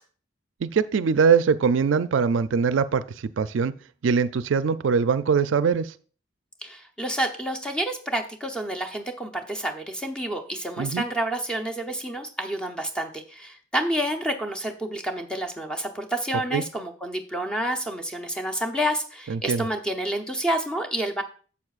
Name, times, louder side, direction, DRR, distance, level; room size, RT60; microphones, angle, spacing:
voice 1, 0.6-3.0 3.4-3.7 4.0-5.9 10.8-11.0 16.5-16.6 19.3-19.6, right 6 dB, 80° right, 14 dB, 0.4 m, -22 dB
voice 2, 6.6-21.2, right 1 dB, 5° left, 4 dB, 0.7 m, -29 dB
11.0 x 7.2 x 2.4 m, 0.40 s
head